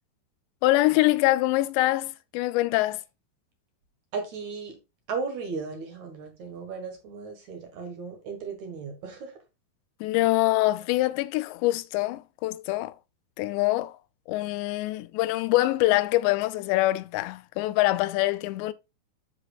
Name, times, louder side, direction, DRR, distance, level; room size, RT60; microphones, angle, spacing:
voice 1, 0.6-3.0 10.0-12.9 13.4-13.9 14.3-18.7, left 18 dB, 85° left, 2.8 m, -24 dB
voice 2, 4.1-4.8 5.1-9.4, right 5 dB, 60° right, 2.1 m, -35 dB
12.5 x 4.8 x 2.3 m
omnidirectional pair, 5.0 m